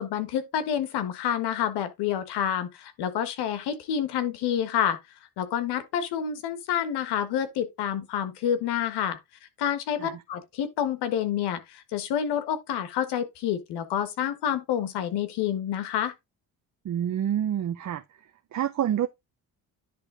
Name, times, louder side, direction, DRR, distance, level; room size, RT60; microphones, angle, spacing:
voice 1, 0.0-5.0 5.4-9.2 9.6-16.1, left 9 dB, 85° left, 1.6 m, -28 dB
voice 2, 16.8-18.0 18.5-19.1, right 10 dB, 45° right, 0.8 m, -27 dB
10.5 x 3.4 x 4.9 m
cardioid pair, 85°, 39 cm